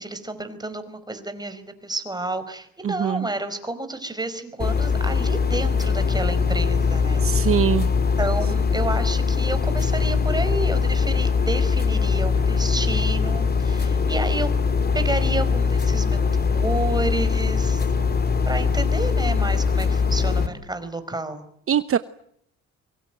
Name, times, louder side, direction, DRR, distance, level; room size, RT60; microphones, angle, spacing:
voice 1, 0.0-7.3 8.2-14.5 14.9-17.8 18.4-21.5, right 2 dB, 15° right, 10 dB, 4.9 m, -30 dB
voice 2, 2.8-3.3 7.2-7.9 21.7-22.0, right 8 dB, 45° right, 13 dB, 1.0 m, -22 dB
sound 1, 4.6-20.5, left 5 dB, 30° left, 3.1 m, -21 dB
25.0 x 23.0 x 9.1 m, 0.69 s
cardioid pair, 90°, 30 cm